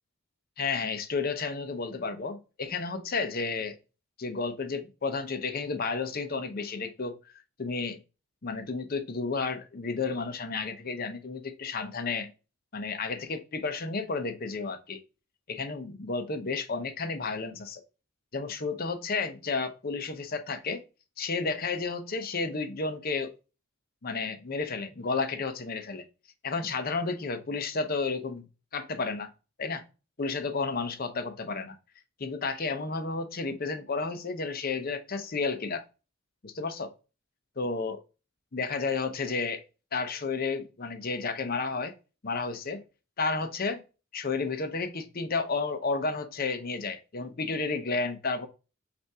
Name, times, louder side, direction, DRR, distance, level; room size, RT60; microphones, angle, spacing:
voice 1, 0.6-3.8 4.2-7.2 7.6-8.0 8.4-12.3 12.7-15.0 15.5-17.8 18.3-20.8 21.2-23.3 24.0-26.0 26.4-28.4 28.7-29.3 29.6-29.8 30.2-31.8 32.2-35.8 36.4-36.9 37.6-38.0 38.5-39.6 39.9-41.9 42.2-42.8 43.2-43.8 44.1-48.5, left 4 dB, 45° left, 0.6 m, -32 dB
5.4 x 2.6 x 3.4 m
head